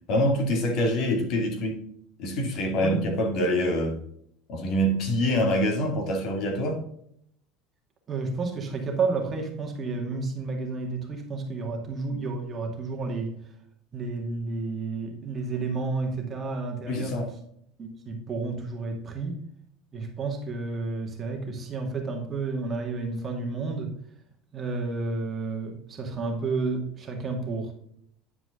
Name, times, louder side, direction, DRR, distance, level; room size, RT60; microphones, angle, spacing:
voice 1, 0.1-1.8 2.2-4.0 4.5-6.8 16.9-17.3, equal, 55° left, 3 dB, 2.3 m, -25 dB
voice 2, 8.1-13.4 13.9-17.2 17.8-19.4 19.9-23.9 24.5-27.7, right 3 dB, 30° right, 1 dB, 2.1 m, -31 dB
9.7 x 4.9 x 3.7 m, 0.69 s
supercardioid pair, 125°, 0 cm